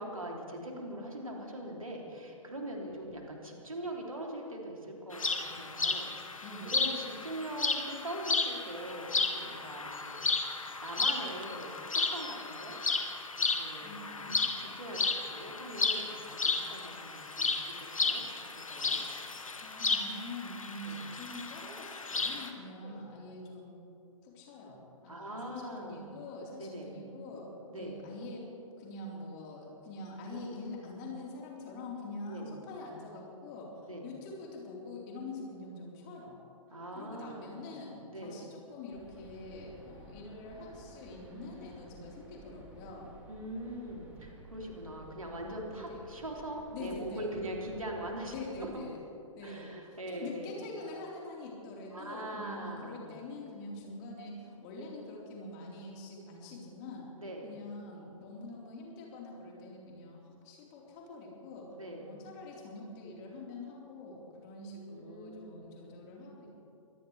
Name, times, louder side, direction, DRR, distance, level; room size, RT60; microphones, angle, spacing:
voice 1, 0.0-6.3 6.6-10.3 10.8-12.8 13.3-14.3 14.6-18.2 18.5-19.0 20.8-21.1 22.8-23.0 25.1-26.1 26.6-27.0 27.7-28.0 32.3-32.5 33.8-34.1 36.7-37.6 38.1-38.4 43.3-48.3 48.6-48.8 49.4-50.6 51.9-53.1 57.2-57.5 61.8-62.2 64.5-65.7, right 1 dB, 80° right, -1 dB, 3.3 m, -42 dB
sound 1, 5.1-22.5, left 3 dB, 75° left, 1.5 m, -33 dB
voice 2, 6.4-6.9 13.8-14.5 19.6-23.8 24.2-28.5 28.8-33.7 34.0-36.4 36.9-43.1 45.7-46.0 46.7-47.3 48.3-49.0 49.4-57.1 57.4-66.6, left 2 dB, 35° left, -3 dB, 4.3 m, -45 dB
sound 2, 38.9-48.7, right 3 dB, 10° right, 3.8 m, -54 dB
24.5 x 17.0 x 3.4 m, 2.7 s
figure-of-eight pair, 115°, 17 cm